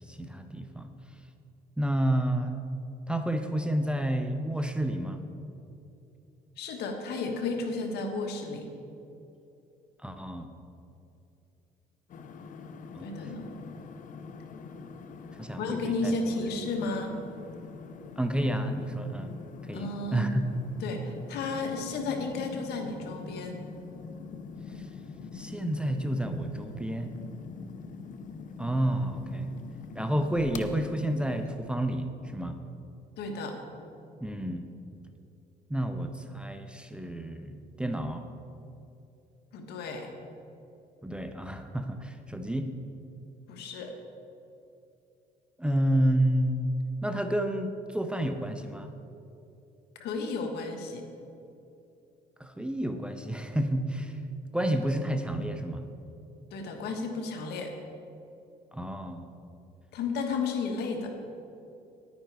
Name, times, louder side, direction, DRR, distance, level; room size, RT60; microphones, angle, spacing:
voice 1, 0.1-0.9 1.8-2.6 3.1-5.2 10.0-10.5 12.9-13.1 15.4-16.2 18.2-19.3 19.6-20.4 24.8-24.9 25.3-27.1 28.6-29.5 29.9-32.1 32.3-32.6 34.2-34.7 35.7-38.3 41.0-42.7 45.6-46.6 47.0-48.9 52.4-54.1 54.5-55.8 58.7-59.3, right 1 dB, 5° right, 7 dB, 0.6 m, -30 dB
voice 2, 6.6-8.7 13.0-13.5 15.6-17.2 19.7-20.3 20.8-23.6 33.2-33.6 39.5-40.1 43.5-43.9 50.0-51.1 56.5-57.7 59.9-61.1, left 3 dB, 75° left, 4 dB, 1.4 m, -33 dB
sound 1, 12.1-31.5, left 5 dB, 50° left, 0.7 m, -44 dB
10.0 x 9.4 x 4.7 m, 2.7 s
cardioid pair, 110°, 17 cm